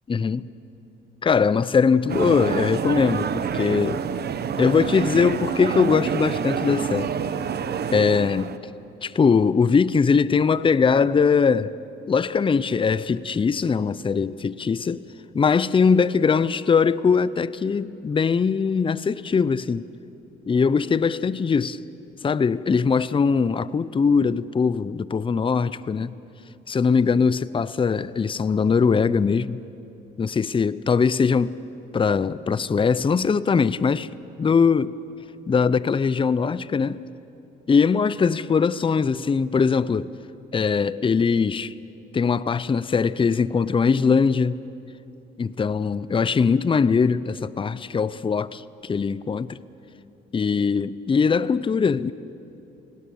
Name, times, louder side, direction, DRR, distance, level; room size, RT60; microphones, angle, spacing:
voice 1, 0.1-0.4 1.2-4.0 4.6-7.1 7.9-8.5 9.0-11.7 12.1-15.0 15.3-19.8 20.5-21.8 22.2-26.1 26.7-29.6 30.2-31.5 31.9-34.1 34.4-34.9 35.5-37.0 37.7-40.1 40.5-41.7 42.1-44.6 45.4-49.6 50.3-52.1, left 5 dB, 25° left, 0.6 m, -21 dB
sound 1, 2.1-8.6, right 7 dB, 55° right, 1.0 m, -27 dB
28.0 x 18.5 x 7.0 m
cardioid pair, 90°, 20 cm